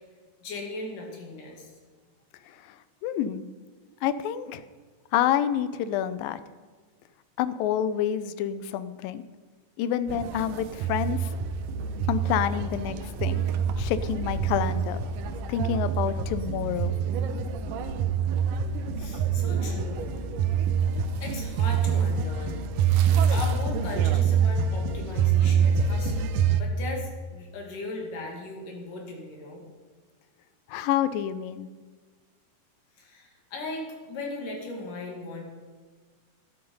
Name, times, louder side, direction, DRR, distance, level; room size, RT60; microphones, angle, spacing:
voice 1, 0.4-1.7 19.0-19.9 21.2-22.6 23.3-26.3 26.6-29.6 33.0-35.4, left 2 dB, 60° left, 1 dB, 3.8 m, -38 dB
voice 2, 3.0-3.4 4.0-4.6 5.1-6.4 7.4-9.2 9.8-11.3 12.1-13.5 13.8-15.0 15.5-16.9 30.7-31.7, left 10 dB, 80° left, 13 dB, 2.3 m, -28 dB
sound 1, 10.1-26.6, right 7 dB, 75° right, 2.2 m, -26 dB
12.5 x 11.5 x 5.4 m, 1.5 s
omnidirectional pair, 4.2 m